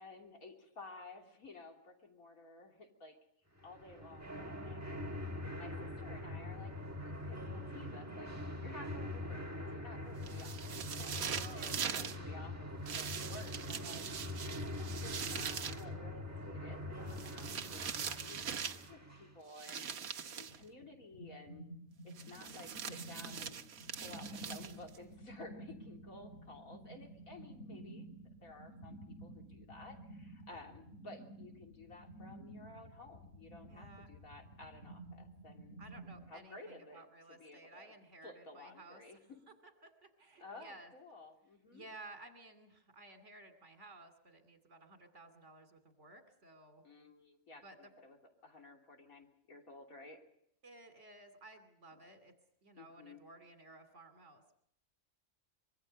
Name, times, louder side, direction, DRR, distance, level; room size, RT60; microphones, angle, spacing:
voice 1, 0.0-3.2 3.6-5.0 5.6-6.9 7.2-14.5 14.8-21.7 22.0-23.6 23.9-28.1 28.4-35.8 36.3-37.0 37.3-37.9 38.2-39.2 40.4-41.9 46.8-48.2 48.4-50.2 52.8-53.2, left 2 dB, 75° left, 2 dB, 3.5 m, -54 dB
sound 1, 3.6-19.4, left 1 dB, 10° right, 1.4 m, -43 dB
sound 2, 10.2-12.2 12.9-15.8 17.1-18.9 19.6-20.6 22.2-25.0, right 7 dB, 75° right, 1.5 m, -42 dB
voice 2, 11.3-12.2 30.5-30.7 33.7-34.1 35.8-39.3 39.6-40.9 41.7-46.8 47.6-47.9 50.6-52.3 52.6-54.5, right 2 dB, 55° right, 7 dB, 3.1 m, -56 dB
sound 3, 20.5-36.3, right 1 dB, 55° left, 6.5 m, -52 dB
25.0 x 23.0 x 5.3 m, 0.72 s
omnidirectional pair, 1.5 m